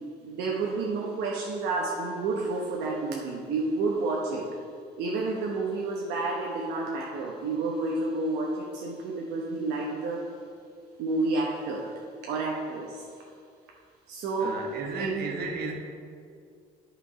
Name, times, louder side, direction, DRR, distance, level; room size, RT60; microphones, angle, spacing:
voice 1, 0.2-4.5 5.0-10.3 11.0-11.9 12.2-13.0 14.1-15.3, right 3 dB, 85° right, -2 dB, 1.0 m, -30 dB
voice 2, 14.4-15.7, right 3 dB, 65° right, 2 dB, 1.4 m, -34 dB
10.0 x 5.1 x 5.0 m, 2.3 s
cardioid pair, 110°, 17 cm